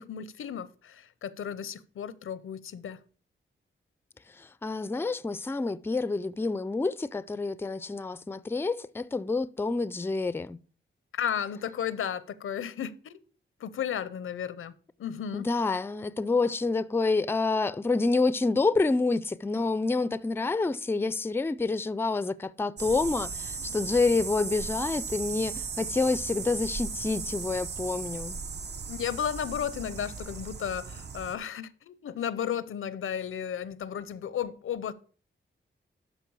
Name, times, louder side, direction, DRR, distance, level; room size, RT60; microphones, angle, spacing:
voice 1, 0.0-3.0 11.1-13.2 13.6-14.7 15.0-15.5 28.9-34.9, left 8 dB, 90° left, 0.6 m, -34 dB
voice 2, 4.4-10.6 15.3-28.4, left 3 dB, 10° left, 0.4 m, -28 dB
sound 1, 22.8-31.4, right 5 dB, 55° right, 0.8 m, -37 dB
12.0 x 4.3 x 4.7 m
wide cardioid pair, 90°, 21 cm